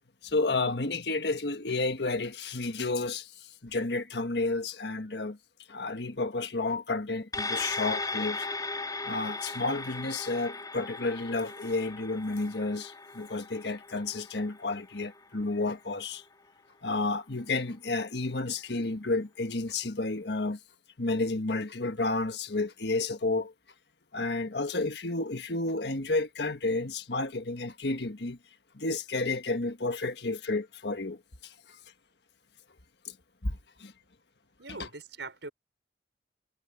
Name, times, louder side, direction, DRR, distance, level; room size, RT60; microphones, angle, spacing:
voice 1, 0.2-5.4 5.7-8.5 9.0-16.2 16.8-20.6 21.0-23.5 24.1-28.4 28.7-31.5 33.0-33.2 33.4-33.9 34.8-34.9, left 3 dB, 70° left, 1.5 m, -31 dB
sound 1, 7.3-16.0 16.4-16.5, left 3 dB, 20° left, 4.6 m, -37 dB
voice 2, 34.6-35.5, right 3 dB, 80° right, 5.9 m, -42 dB
head